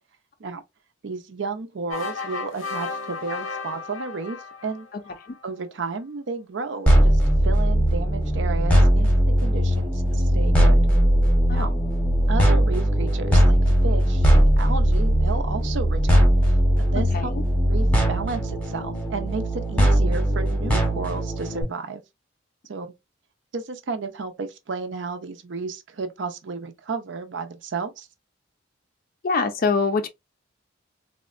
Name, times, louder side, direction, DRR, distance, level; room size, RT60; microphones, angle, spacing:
voice 1, 1.0-4.4 4.6-4.9 5.4-10.8 11.5-11.7 12.3-16.4 16.8-17.3 17.7-22.0 22.7-22.9 23.5-28.1, right 4 dB, 65° right, 0.5 m, -32 dB
sound 1, 1.9-5.4, left 4 dB, 90° left, 0.7 m, -34 dB
sound 2, 6.9-21.6, equal, 5° left, 0.8 m, -19 dB
voice 2, 17.0-17.4 29.2-30.1, left 4 dB, 45° left, 0.4 m, -24 dB
3.5 x 2.1 x 2.4 m
head